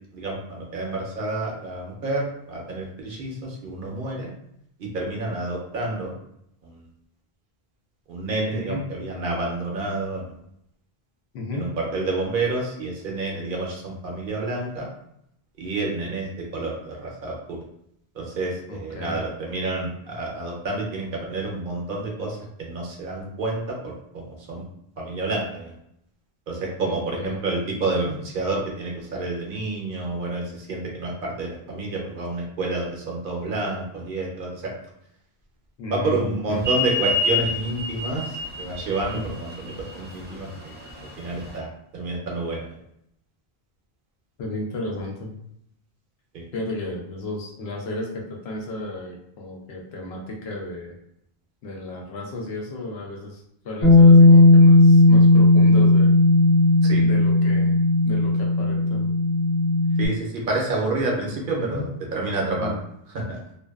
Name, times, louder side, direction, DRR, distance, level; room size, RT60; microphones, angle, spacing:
voice 1, 0.1-4.3 4.8-6.1 6.6-6.8 8.1-10.3 11.5-14.9 15.6-17.6 18.1-24.6 25.0-25.7 26.5-34.7 35.9-40.7 41.2-42.7 46.3-46.4 56.8-57.0 60.0-62.7 63.1-63.4, right 2 dB, 60° right, -1 dB, 0.7 m, -29 dB
voice 2, 8.5-8.9 11.3-11.7 18.7-19.2 26.8-27.4 35.8-36.6 39.1-39.2 44.4-45.3 46.5-51.0 51.6-56.1 57.0-57.8 58.0-59.1 59.9-60.0 61.0-61.1 61.6-61.9 62.6-62.8, left 2 dB, 85° left, -1 dB, 0.9 m, -33 dB
sound 1, 36.6-41.6, equal, 15° right, 0.4 m, -29 dB
Bass guitar, 53.8-60.1, left 2 dB, 50° left, 0.9 m, -15 dB
2.6 x 2.1 x 2.2 m, 0.76 s
omnidirectional pair, 1.0 m